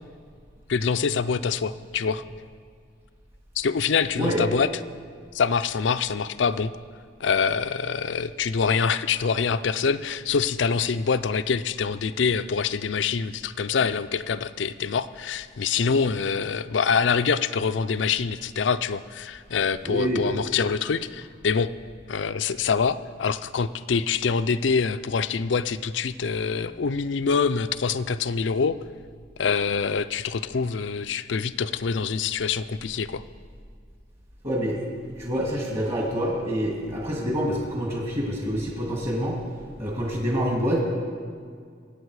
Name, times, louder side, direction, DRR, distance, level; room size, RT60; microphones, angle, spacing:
voice 1, 0.7-2.2 3.6-4.7 5.3-6.7 7.2-21.7 22.1-28.8 29.4-33.2, left 5 dB, 70° left, 14 dB, 0.5 m, -25 dB
voice 2, 19.8-20.2 34.4-34.8 35.2-39.4 39.8-40.8, equal, 35° right, -2 dB, 2.1 m, -26 dB
23.5 x 8.6 x 4.8 m, 2.1 s
head